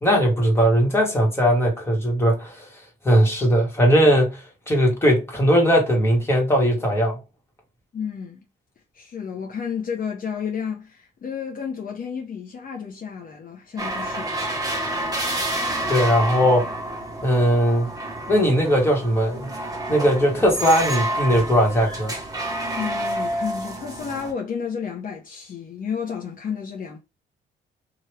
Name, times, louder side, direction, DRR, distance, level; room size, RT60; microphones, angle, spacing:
voice 1, 0.0-2.7 3.0-7.2 15.9-16.7 17.2-17.9 18.3-19.5 19.9-22.1, equal, 10° left, 1.5 m, -19 dB
voice 2, 7.9-8.4 8.9-14.3 22.8-27.0, left 7 dB, 45° left, 0.7 m, -31 dB
sound 1, 13.8-24.3, right 1 dB, 20° right, 1.1 m, -29 dB
2.9 x 2.5 x 3.2 m
cardioid pair, 90°, 20 cm